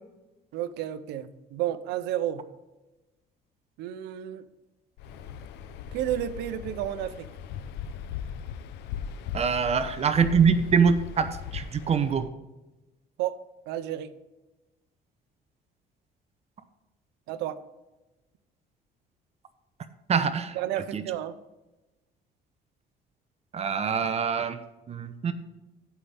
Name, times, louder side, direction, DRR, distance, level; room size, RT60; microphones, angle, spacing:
voice 1, 0.5-2.5 3.8-4.4 5.9-7.3 13.2-14.1 17.3-17.6 20.5-21.4, right 12 dB, 90° right, 13 dB, 0.7 m, -31 dB
Waves surf, 5.0-12.3, left 7 dB, 85° left, 0.7 m, -38 dB
voice 2, 9.3-11.3 11.5-12.3 20.1-20.6 20.9-21.0 23.5-24.6 24.9-25.3, right 6 dB, 40° right, 11 dB, 0.8 m, -24 dB
15.5 x 5.7 x 3.5 m, 1.0 s
cardioid pair, 110°, 17 cm